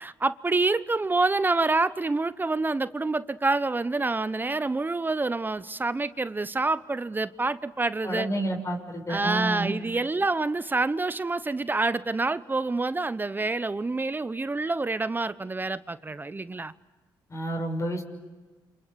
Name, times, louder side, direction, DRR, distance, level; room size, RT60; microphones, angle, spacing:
voice 1, 0.0-8.3 9.1-16.7, right 3 dB, 20° right, 0.9 m, -27 dB
voice 2, 8.0-9.7 17.3-18.0, right 1 dB, 35° left, 6.4 m, -29 dB
29.5 x 27.0 x 7.0 m
supercardioid pair, 70°, 9 cm